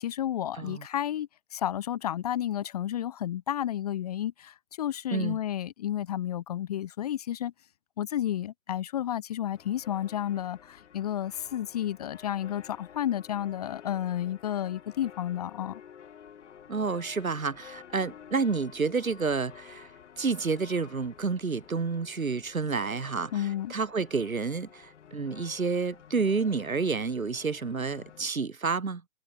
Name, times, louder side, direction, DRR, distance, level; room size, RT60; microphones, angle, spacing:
voice 1, 0.0-7.5 8.0-15.8 23.3-23.7, left 11 dB, 30° left, 0.5 m, -31 dB
sound 1, 9.5-28.3, left 8 dB, 60° left, 2.2 m, -51 dB
voice 2, 16.7-19.9 20.2-29.0, right 4 dB, 85° right, 1.3 m, -30 dB
figure-of-eight pair, 120°, 40 cm